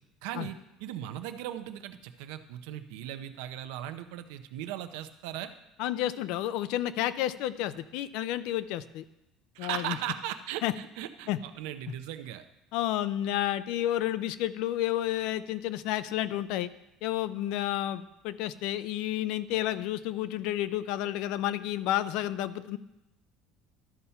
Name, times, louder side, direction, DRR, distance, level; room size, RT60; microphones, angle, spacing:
voice 1, 0.2-5.5 9.5-12.5, right 11 dB, 85° right, 9 dB, 0.6 m, -38 dB
voice 2, 5.8-9.0 9.6-10.0 10.6-10.7 11.3-11.4 12.7-16.7 17.0-22.8, left 13 dB, 70° left, 15 dB, 0.4 m, -31 dB
12.5 x 4.3 x 5.6 m, 0.90 s
cardioid pair, 140°, 0 cm